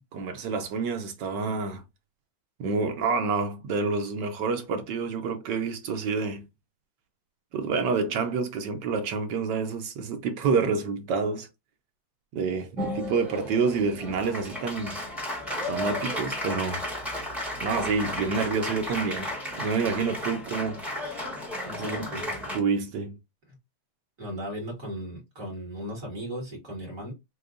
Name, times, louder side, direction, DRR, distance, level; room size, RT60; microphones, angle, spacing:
voice 1, 0.1-1.8 2.6-6.4 7.5-11.5 12.3-15.0 15.7-16.9 17.6-20.8 21.7-22.0 22.5-23.2, right 4 dB, 70° right, 1.2 m, -28 dB
Applause, 12.8-22.6, left 1 dB, ahead, 1.2 m, -33 dB
voice 2, 21.7-22.3 23.5-23.6 24.2-27.1, equal, 45° right, 2.1 m, -36 dB
6.3 x 2.3 x 2.5 m
omnidirectional pair, 2.1 m